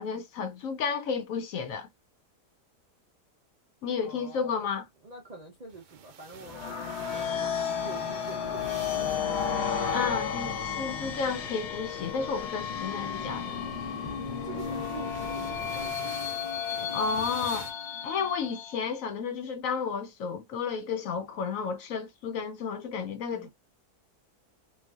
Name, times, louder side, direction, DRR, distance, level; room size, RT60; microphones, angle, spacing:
voice 1, 0.0-1.9 3.8-4.8 9.9-13.7 16.9-17.7 18.0-23.5, left 6 dB, 70° left, 0.9 m, -32 dB
voice 2, 4.0-4.7 5.0-6.6 7.1-9.5 14.4-16.5 16.8-17.0 23.3-23.5, right 4 dB, 45° right, 0.5 m, -46 dB
sound 1, 5.6-10.6 12.4-12.6 14.5-17.7, right 7 dB, 80° right, 1.1 m, -48 dB
sound 2, 6.4-18.9, left 7 dB, 85° left, 1.3 m, -33 dB
sound 3, 8.4-15.9, left 3 dB, 45° left, 0.7 m, -44 dB
3.2 x 2.5 x 2.4 m
omnidirectional pair, 1.6 m